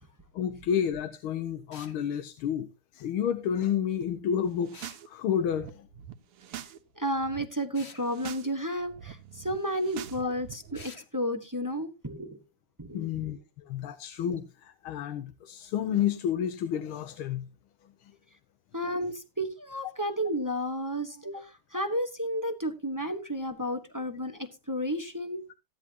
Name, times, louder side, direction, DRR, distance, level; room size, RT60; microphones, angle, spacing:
voice 1, 0.3-2.7 2.9-4.8 5.1-5.9 12.9-17.4 18.0-18.1, left 9 dB, 75° left, 10 dB, 1.7 m, -30 dB
sound 1, 1.7-2.0 4.7-5.0 7.7-8.0 10.7-11.1, left 4 dB, 35° left, 1.3 m, -48 dB
sound 2, 4.5-5.1 5.3-6.8 7.0-7.4 7.9-8.5 8.8-10.8, right 10 dB, 85° right, 1.9 m, -44 dB
voice 2, 7.0-12.4 12.8-13.2 18.7-25.4, equal, 15° right, 7 dB, 0.6 m, -32 dB
15.5 x 10.5 x 2.9 m, 0.28 s
omnidirectional pair, 2.4 m